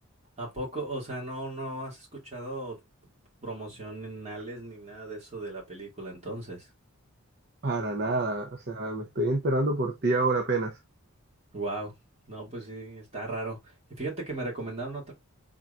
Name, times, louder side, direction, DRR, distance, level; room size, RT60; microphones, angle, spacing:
voice 1, 0.4-2.8 3.4-6.7 8.0-8.1 11.5-11.9 12.3-15.1, right 2 dB, 30° right, 2.5 m, -37 dB
voice 2, 7.6-10.8, right 2 dB, 45° right, 0.6 m, -27 dB
4.5 x 3.7 x 2.5 m
head